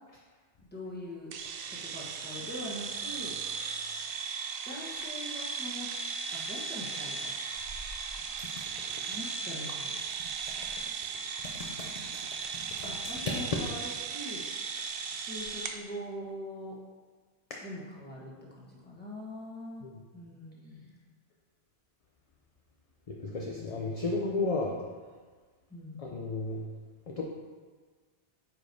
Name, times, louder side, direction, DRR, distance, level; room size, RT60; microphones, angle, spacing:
voice 1, 0.7-1.3 1.7-3.4 4.6-7.4 9.1-10.0 11.8-12.1 12.8-14.5 15.1-16.8 17.6-19.9 20.1-21.0 23.4-23.7 25.7-26.1, left 1 dB, 10° left, -4 dB, 1.1 m, -43 dB
sound 1, 1.3-15.8, right 5 dB, 60° right, 0.7 m, -37 dB
voice 2, 23.1-24.8 26.0-26.6 27.1-27.2, left 3 dB, 45° left, -1 dB, 0.5 m, -33 dB
8.7 x 5.0 x 2.7 m, 1.5 s
omnidirectional pair, 1.2 m